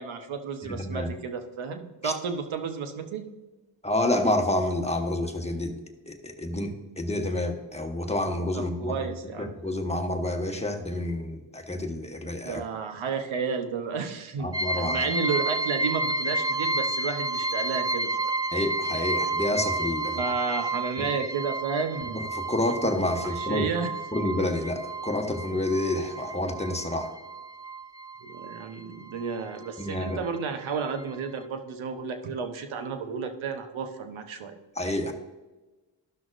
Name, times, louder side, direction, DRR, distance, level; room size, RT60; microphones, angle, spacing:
voice 1, 0.0-3.3 8.5-9.6 12.4-18.3 20.1-22.3 23.2-23.9 28.2-34.6, right 5 dB, 80° right, 7 dB, 1.0 m, -32 dB
voice 2, 0.6-1.1 2.0-2.1 3.8-5.7 6.1-9.1 9.4-12.6 14.4-15.0 18.5-20.2 22.5-23.7 24.1-27.1 29.8-30.2 34.8-35.1, left 1 dB, 15° left, 4 dB, 1.3 m, -28 dB
sound 1, 14.5-28.8 29.1-30.1 30.5-30.6 31.0-31.1, right 2 dB, 10° right, 0.5 m, -31 dB
13.0 x 6.0 x 2.5 m, 1.1 s
supercardioid pair, 45°, 47 cm